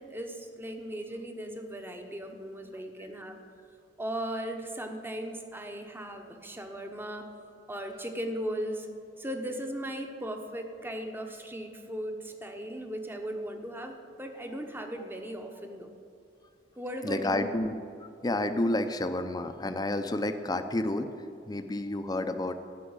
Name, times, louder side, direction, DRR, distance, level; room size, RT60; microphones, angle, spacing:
voice 1, 0.0-3.4 4.0-7.3 7.7-8.9 9.2-15.9 16.8-17.5, right 1 dB, 10° right, 5 dB, 0.9 m, -37 dB
voice 2, 17.0-17.7 18.2-21.1 21.5-22.5, left 1 dB, 20° left, 8 dB, 0.6 m, -30 dB
12.0 x 5.8 x 8.7 m, 2.5 s
head